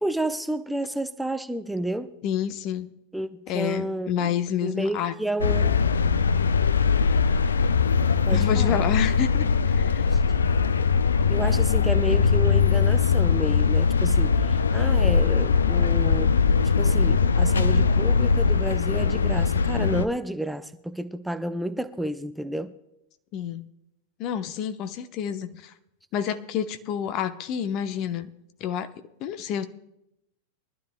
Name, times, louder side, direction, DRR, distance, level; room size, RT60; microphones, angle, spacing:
voice 1, 0.0-2.1 3.1-4.3 4.6-5.8 8.3-8.8 10.1-10.2 11.3-16.3 16.8-22.7, right 1 dB, 5° right, 0.6 m, -30 dB
voice 2, 2.2-2.9 3.5-5.1 8.3-10.1 23.3-23.7 24.2-25.7 26.1-28.3 28.6-28.9 29.2-29.7, left 9 dB, 40° left, 0.8 m, -29 dB
sound 1, 5.4-20.0, left 5 dB, 70° left, 0.5 m, -21 dB
23.0 x 12.5 x 2.2 m
figure-of-eight pair, 90°, 0 cm